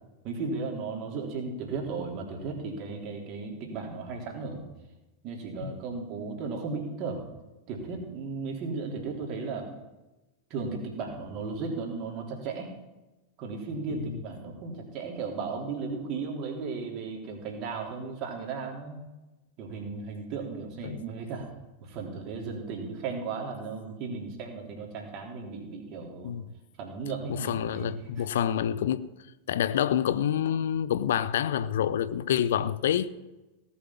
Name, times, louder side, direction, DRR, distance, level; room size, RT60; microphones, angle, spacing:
voice 1, 0.2-4.6 5.2-7.2 7.7-9.7 10.5-12.7 13.4-19.0 19.6-21.5 21.8-26.3 26.8-27.9 28.2-28.3, right 4 dB, 40° right, 3.6 m, -35 dB
voice 2, 13.9-14.2 20.8-21.0 26.2-26.5 27.3-29.1 29.5-33.1, left 10 dB, 60° left, 0.6 m, -27 dB
17.5 x 7.2 x 7.3 m
figure-of-eight pair, 90°, 0 cm